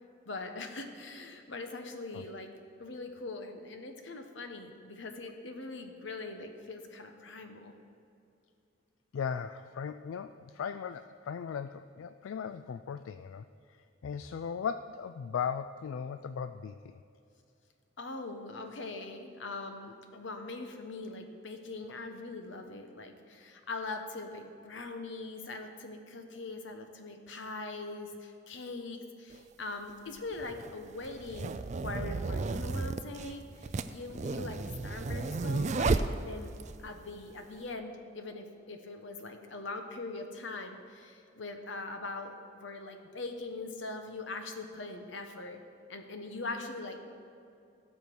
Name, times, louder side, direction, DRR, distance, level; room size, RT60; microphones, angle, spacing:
voice 1, 0.3-2.5 2.8-7.7 18.0-31.6 31.8-36.5 36.8-45.6 45.9-47.0, left 3 dB, 65° left, 5 dB, 1.1 m, -42 dB
voice 2, 9.1-17.0 21.9-22.0, left 7 dB, 85° left, 11 dB, 0.3 m, -38 dB
sound 1, 29.3-29.4 30.3-36.7, right 3 dB, 35° right, 0.4 m, -33 dB
17.5 x 6.8 x 4.6 m, 2.6 s
head